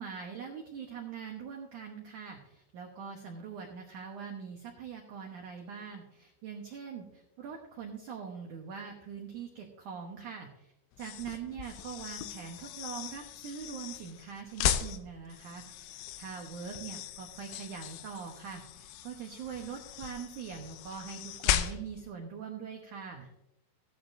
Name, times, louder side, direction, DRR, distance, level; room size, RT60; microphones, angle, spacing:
voice 1, 0.0-10.7 11.0-23.3, right 6 dB, 90° right, 2 dB, 1.7 m, -43 dB
sound 1, 10.9-22.1, left 10 dB, 80° left, 2.9 m, -37 dB
15.5 x 11.0 x 2.7 m, 0.85 s
omnidirectional pair, 5.4 m